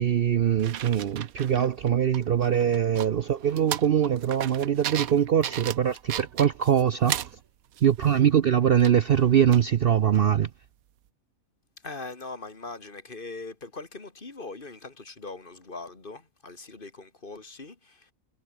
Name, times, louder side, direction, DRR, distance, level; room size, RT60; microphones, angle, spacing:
voice 1, 0.0-7.2 7.8-10.5, right 9 dB, 55° right, 0.6 m, -22 dB
sound 1, 0.6-7.4 7.7-8.2 8.8-9.7 10.2-10.3, right 11 dB, 75° right, 1.3 m, -36 dB
voice 2, 11.8-18.1, left 3 dB, 35° left, 2.4 m, -41 dB
omnidirectional pair, 1.5 m